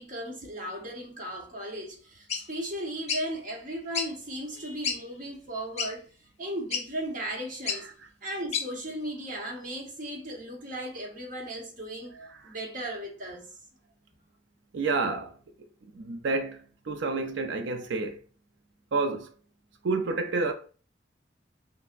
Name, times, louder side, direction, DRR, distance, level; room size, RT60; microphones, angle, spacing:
voice 1, 0.0-6.1 6.4-7.9 8.2-13.5, right 1 dB, 45° right, 1.0 m, -36 dB
sound 1, 2.3-2.4 3.1-3.2 3.9-4.1 4.6-4.7 4.8-5.0 5.8-5.9 6.7-6.9 7.7-7.8 8.5-8.7, left 6 dB, 40° left, 0.6 m, -29 dB
voice 2, 14.7-15.3 15.9-18.2 18.9-19.3 19.8-20.5, right 3 dB, 80° right, 0.5 m, -29 dB
5.6 x 2.1 x 2.5 m
head